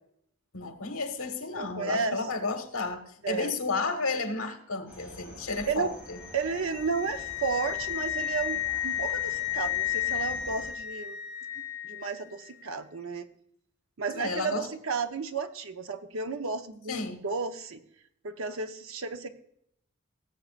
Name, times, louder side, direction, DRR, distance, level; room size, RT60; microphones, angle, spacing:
voice 1, 0.5-6.2 14.1-14.7 16.9-17.2, left 3 dB, 85° left, 6 dB, 1.5 m, -32 dB
voice 2, 1.6-2.2 3.2-3.5 5.7-5.9 6.3-11.2 11.8-13.3 14.0-17.8 18.2-19.3, right 5 dB, 75° right, 8 dB, 0.8 m, -33 dB
sound 1, 4.9-10.7, left 1 dB, 5° right, 2.7 m, -48 dB
Wind instrument woodwind instrument, 6.1-12.1, left 12 dB, 50° left, 4.5 m, -33 dB
17.0 x 7.6 x 2.5 m, 0.73 s
head